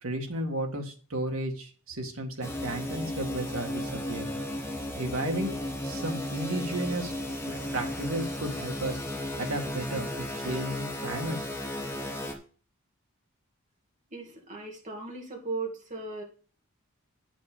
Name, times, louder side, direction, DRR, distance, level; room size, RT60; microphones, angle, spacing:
voice 1, 0.0-4.4 5.0-5.5 5.8-7.1 7.4-9.0 9.4-11.5, right 1 dB, 80° right, 3 dB, 1.8 m, -33 dB
sound 1, 2.4-12.3, left 1 dB, 10° left, 1.4 m, -34 dB
voice 2, 14.1-16.2, right 3 dB, 35° right, 0 dB, 2.2 m, -37 dB
8.7 x 6.2 x 5.1 m, 0.39 s
head